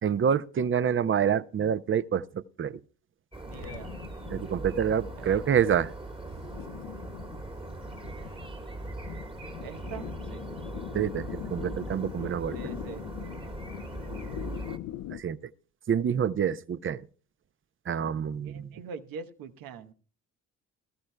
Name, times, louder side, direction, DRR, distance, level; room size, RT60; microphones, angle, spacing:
voice 1, 0.0-2.8 4.3-5.9 10.9-12.6 15.1-15.4 15.9-17.0 17.9-18.7, right 8 dB, 35° right, 0.6 m, -27 dB
sound 1, 3.3-14.8, right 2 dB, 15° right, 1.4 m, -40 dB
voice 2, 3.4-3.9 5.2-5.7 9.6-10.5 12.5-13.0 18.4-19.9, right 5 dB, 75° right, 1.1 m, -43 dB
sound 2, 3.5-15.2, left 13 dB, 70° left, 0.6 m, -42 dB
19.5 x 13.5 x 2.2 m
supercardioid pair, 60°, 35 cm